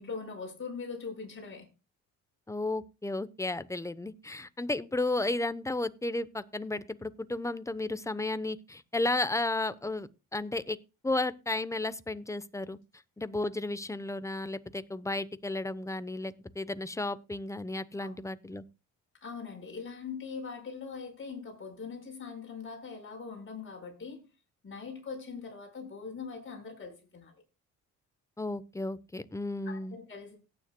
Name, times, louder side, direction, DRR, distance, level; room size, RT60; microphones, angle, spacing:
voice 1, 0.0-1.7 18.0-18.1 19.2-24.3 24.6-27.3 29.6-30.4, left 5 dB, 35° left, 5.4 m, -41 dB
voice 2, 2.5-10.8 11.0-12.8 13.2-18.6 28.4-30.0, left 2 dB, 10° left, 0.8 m, -33 dB
17.5 x 9.5 x 2.2 m
cardioid pair, 85°, 34 cm